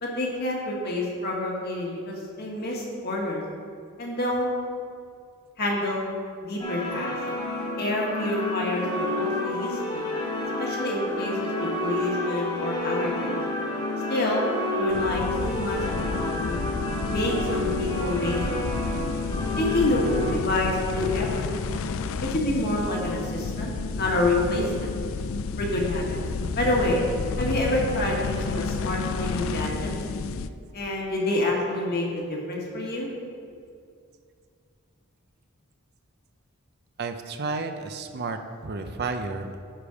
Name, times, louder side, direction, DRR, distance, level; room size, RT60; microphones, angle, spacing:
voice 1, 0.0-3.4 4.0-4.5 5.6-6.1 6.4-7.1 7.8-10.0 10.6-13.4 14.1-14.4 14.8-16.6 17.1-18.6 19.6-21.6 22.2-23.7 24.0-24.9 25.6-26.2 26.6-27.0 27.4-29.9 30.7-33.1, left 1 dB, 45° left, -2 dB, 1.5 m, -28 dB
sound 1, 6.6-20.3, left 2 dB, 20° left, 1.5 m, -30 dB
sound 2, 14.9-30.5, left 4 dB, 60° left, 0.3 m, -31 dB
voice 2, 37.0-39.6, right 3 dB, 45° right, 7 dB, 0.5 m, -32 dB
10.0 x 5.1 x 4.9 m, 2.3 s
head